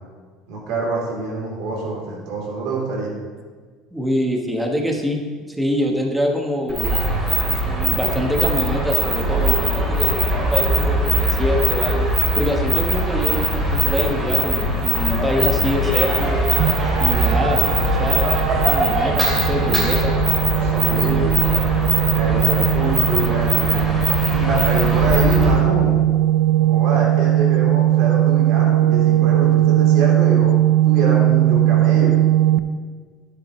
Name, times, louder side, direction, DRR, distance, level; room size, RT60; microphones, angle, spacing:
voice 1, 0.5-3.1 20.6-21.5 22.1-23.9 24.3-26.0 26.6-30.5 30.8-32.2, right 2 dB, 70° right, -3 dB, 3.7 m, -25 dB
voice 2, 3.9-5.2 5.5-6.9 7.6-12.1 12.3-16.4 17.0-20.2 20.9-21.3, equal, 5° right, 1 dB, 1.3 m, -24 dB
sound 1, 6.7-25.6, equal, 25° right, 3.1 m, -21 dB
sound 2, 16.6-32.6, right 14 dB, 85° right, 0.4 m, -19 dB
12.0 x 10.5 x 3.3 m, 1.5 s
cardioid pair, 135°, 0 cm